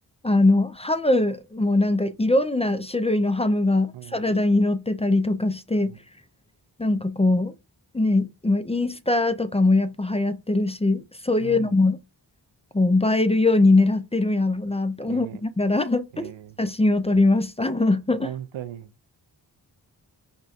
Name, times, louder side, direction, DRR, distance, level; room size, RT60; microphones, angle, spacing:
voice 1, 0.2-5.9 6.8-7.5 7.9-12.0 12.7-16.3 16.6-18.3, left 2 dB, 15° left, 0.4 m, -22 dB
voice 2, 11.4-11.7 15.1-15.4 16.1-16.6 18.2-18.9, right 11 dB, 90° right, 0.5 m, -37 dB
5.3 x 2.3 x 4.2 m
cardioid pair, 50°, 45 cm